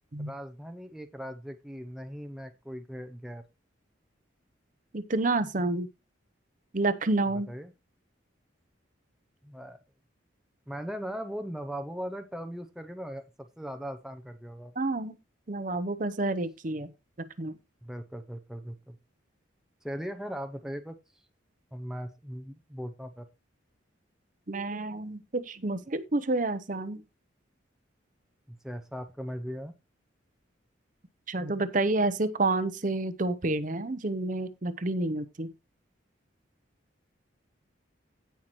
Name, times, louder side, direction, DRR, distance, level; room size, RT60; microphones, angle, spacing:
voice 1, 0.2-3.4 7.5-7.7 9.4-9.8 10.7-14.7 17.8-19.0 19.8-21.0 21.7-23.3 28.5-29.7, equal, 5° right, 0.6 m, -39 dB
voice 2, 4.9-5.9 6.7-7.5 14.8-15.2 15.5-16.9 17.4-17.5 24.5-27.0 31.3-35.5, right 2 dB, 40° right, 0.7 m, -29 dB
16.5 x 5.7 x 3.1 m
head